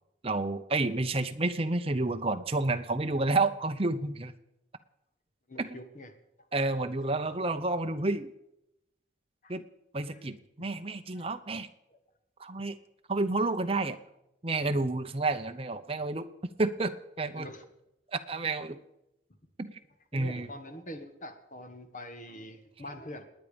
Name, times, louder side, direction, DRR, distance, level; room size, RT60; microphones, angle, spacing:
voice 1, 0.2-4.3 5.6-5.8 6.5-8.3 9.5-9.6 9.9-11.7 12.4-12.7 13.1-14.0 14.4-16.3 16.6-17.5 18.1-18.8 19.6-19.7 20.1-20.5, right 2 dB, 30° right, 8 dB, 0.8 m, -30 dB
voice 2, 5.5-6.1 6.7-6.8 9.4-9.6 10.1-10.3 10.6-10.7 11.1-11.3 11.9-12.0 13.8-13.9 17.3-17.7 20.1-23.2, equal, 40° left, 6 dB, 1.7 m, -44 dB
28.0 x 9.7 x 5.2 m, 0.87 s
head